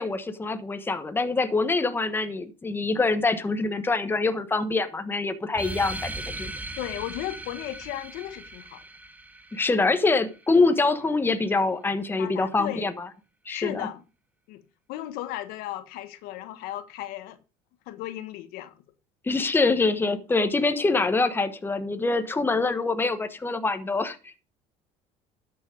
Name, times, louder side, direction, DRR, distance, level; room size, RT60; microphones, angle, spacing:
voice 1, 0.0-6.5 9.5-13.1 13.5-13.9 19.2-24.4, left 3 dB, 15° left, 1.2 m, -25 dB
sound 1, 5.5-10.6, right 2 dB, 10° right, 1.2 m, -38 dB
voice 2, 6.8-8.8 12.2-12.9 13.5-14.0 14.5-14.6 14.9-17.4 17.9-18.7, left 14 dB, 75° left, 1.3 m, -35 dB
11.5 x 7.1 x 5.1 m
cardioid pair, 120°, 16 cm